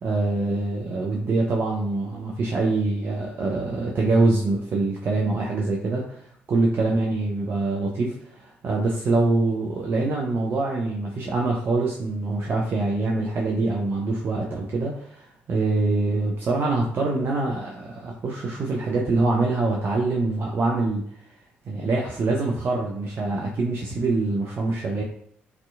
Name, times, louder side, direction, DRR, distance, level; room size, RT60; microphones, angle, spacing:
voice 1, 0.0-21.0 21.7-25.0, right 3 dB, 40° right, -2 dB, 0.4 m, -24 dB
2.6 x 2.3 x 2.3 m, 0.63 s
figure-of-eight pair, 45°, 6 cm